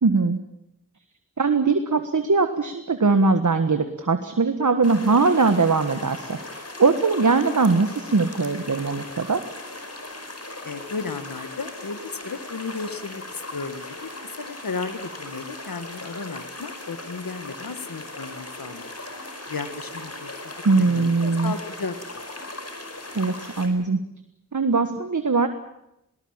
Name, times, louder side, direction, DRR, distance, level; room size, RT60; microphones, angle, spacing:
voice 1, 0.0-0.4 1.4-9.4 20.6-21.5 23.1-24.0 24.5-25.5, right 4 dB, 60° right, 8 dB, 1.6 m, -21 dB
sound 1, 4.8-23.7, left 2 dB, 45° left, 4.9 m, -38 dB
voice 2, 10.6-18.9 19.2-21.9, left 4 dB, 90° left, 9 dB, 1.6 m, -34 dB
21.0 x 19.0 x 8.9 m, 0.84 s
wide cardioid pair, 45°, 33 cm